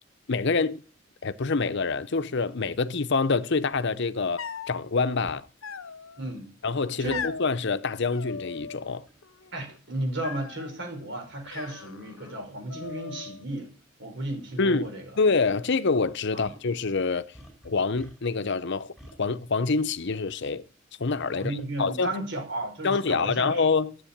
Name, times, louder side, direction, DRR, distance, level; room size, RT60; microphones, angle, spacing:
voice 1, 0.3-0.8 1.2-5.5 6.6-9.0 14.6-14.9 15.2-17.3 17.6-18.9 19.2-20.6 21.0-22.1 22.8-24.0, left 4 dB, 60° left, 0.8 m, -26 dB
sound 1, 3.7-3.8 5.3-5.4 7.0-7.3 9.1-9.3 10.1-10.2 11.0-11.1 11.4-11.5 12.8-13.0 14.3-14.5 14.8-14.9 16.4-16.7 17.3-18.5 19.0-19.2, equal, ahead, 5.3 m, -50 dB
sound 2, 4.4-4.8 5.6-6.3 7.1-7.5 8.1-8.9 9.2-9.8 10.2-10.8 11.5-12.4 12.7-13.4, left 6 dB, 85° left, 0.9 m, -39 dB
voice 2, 6.2-6.5 7.0-7.2 9.5-13.7 14.0-15.1 16.3-16.5 21.3-23.7, right 1 dB, 60° right, 5.0 m, -34 dB
13.0 x 8.2 x 8.7 m
head